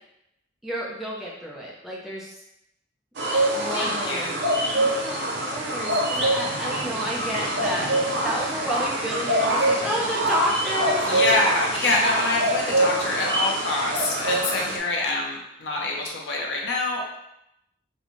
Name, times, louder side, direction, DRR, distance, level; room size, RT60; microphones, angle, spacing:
voice 1, 0.6-2.4 3.6-4.4 4.7-7.9 8.2-11.3, equal, ahead, -5 dB, 0.6 m, -30 dB
sound 1, 3.2-14.8, right 1 dB, 60° right, 0.6 m, -25 dB
voice 2, 3.7-4.4 11.0-17.0, left 2 dB, 70° left, -2 dB, 0.7 m, -25 dB
4.0 x 2.3 x 3.1 m, 0.82 s
head